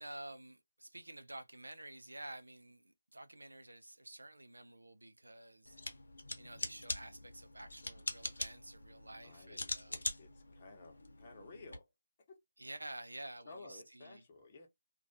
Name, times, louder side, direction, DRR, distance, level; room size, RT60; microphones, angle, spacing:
voice 1, 0.0-5.8 6.4-10.0 12.6-14.2, right 1 dB, 90° right, 0.4 m, -50 dB
sound 1, 5.7-11.8, left 2 dB, 70° left, 0.7 m, -44 dB
voice 2, 9.2-11.9 12.3-12.4 13.4-14.7, left 3 dB, 35° left, 0.8 m, -55 dB
2.2 x 2.2 x 2.6 m
figure-of-eight pair, 155°, 0 cm